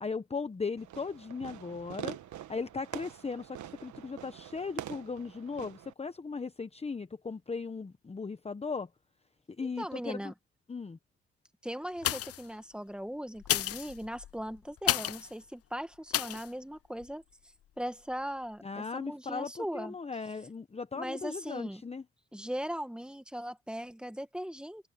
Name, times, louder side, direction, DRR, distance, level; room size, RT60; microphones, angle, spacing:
voice 1, 0.0-2.2 2.5-8.9 9.6-10.3 10.7-11.0 18.6-22.0, left 4 dB, 20° left, 1.0 m, -37 dB
Fireworks, 0.8-5.9, right 12 dB, 70° right, 1.4 m, -45 dB
voice 2, 9.6-10.3 11.6-17.2 17.8-19.9 20.9-21.8 22.3-24.9, equal, 5° right, 1.8 m, -39 dB
sound 1, 12.0-12.5 13.4-15.3 16.1-16.5 17.0-17.1, left 12 dB, 50° left, 0.6 m, -32 dB
open air
cardioid pair, 90°, 30 cm